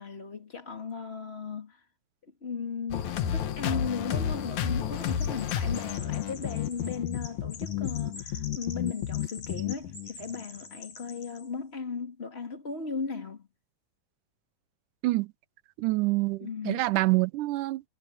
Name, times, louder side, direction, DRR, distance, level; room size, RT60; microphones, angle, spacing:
voice 1, 0.0-1.8 2.4-13.5 16.4-16.9, left 5 dB, 20° left, 2.3 m, -36 dB
sound 1, 2.9-10.4, left 9 dB, 65° left, 2.6 m, -31 dB
Chirp tweet, 4.9-11.5, left 5 dB, 85° left, 7.4 m, -46 dB
voice 2, 15.8-17.8, right 20 dB, 80° right, 2.3 m, -26 dB
omnidirectional pair, 3.7 m